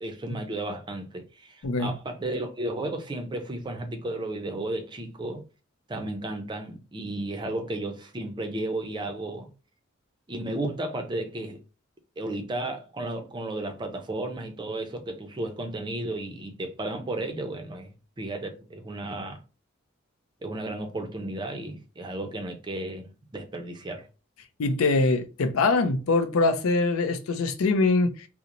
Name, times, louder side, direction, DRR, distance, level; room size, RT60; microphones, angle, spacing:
voice 1, 0.0-5.4 5.9-9.5 10.3-11.6 12.2-19.4 20.4-24.1, right 2 dB, 20° right, 0.4 m, -33 dB
voice 2, 1.6-1.9 24.6-28.3, left 3 dB, 85° left, 0.5 m, -23 dB
2.9 x 2.0 x 2.5 m
head